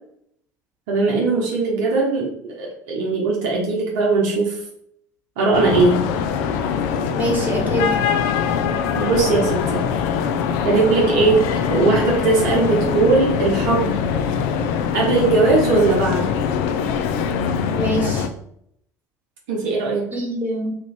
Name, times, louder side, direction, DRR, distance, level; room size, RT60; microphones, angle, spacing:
voice 1, 0.9-4.6 5.4-6.1 8.9-9.9 10.2-10.3 10.6-14.0 14.9-16.3 19.5-20.1, right 3 dB, 70° right, -2 dB, 0.8 m, -19 dB
sound 1, 5.5-18.3, left 7 dB, 65° left, 0.4 m, -22 dB
voice 2, 7.1-8.0 17.7-18.3 20.1-20.8, right 1 dB, 20° right, -1 dB, 1.4 m, -24 dB
3.0 x 2.5 x 3.2 m, 0.71 s
hypercardioid pair, 65°, 9 cm